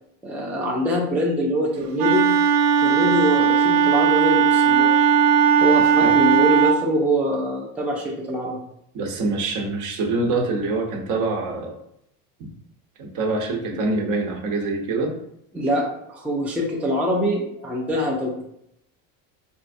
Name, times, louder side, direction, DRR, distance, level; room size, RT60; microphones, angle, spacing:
voice 1, 0.2-2.3 2.8-4.9 5.5-8.6 15.5-18.4, equal, 5° right, -3 dB, 0.5 m, -24 dB
Wind instrument woodwind instrument, 2.0-6.8, right 7 dB, 85° right, 0.6 m, -17 dB
voice 2, 8.9-11.8 13.0-15.1, right 3 dB, 50° right, 2 dB, 0.9 m, -25 dB
4.4 x 3.3 x 2.6 m, 0.76 s
cardioid pair, 135°, 41 cm